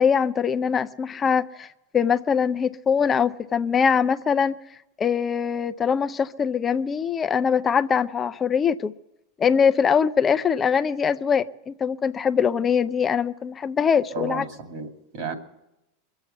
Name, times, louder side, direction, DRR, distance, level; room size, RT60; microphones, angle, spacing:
voice 1, 0.0-1.7 1.9-4.6 5.0-8.9 9.4-14.4, left 7 dB, 25° left, 0.5 m, -22 dB
voice 2, 14.1-15.3, right 4 dB, 60° right, 2.4 m, -33 dB
22.5 x 8.1 x 7.9 m
hypercardioid pair, 110°, 0 cm